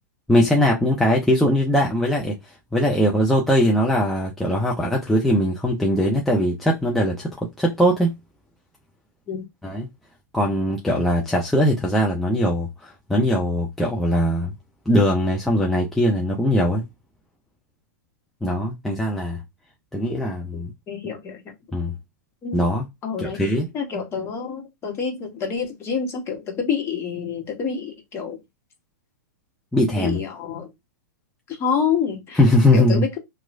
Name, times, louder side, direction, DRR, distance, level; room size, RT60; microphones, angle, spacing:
voice 1, 0.3-8.1 9.6-9.9 10.3-14.5 14.9-16.8 18.4-19.4 19.9-20.7 21.7-21.9 22.5-22.9 23.2-23.7 29.7-30.2 32.3-33.1, equal, ahead, 0.5 m, -20 dB
voice 2, 20.5-21.4 22.4-22.7 23.0-23.4 23.7-28.4 30.0-30.7 31.5-32.4 32.7-33.2, left 6 dB, 25° left, 1.2 m, -27 dB
2.9 x 2.3 x 2.5 m
hypercardioid pair, 115°, 10 cm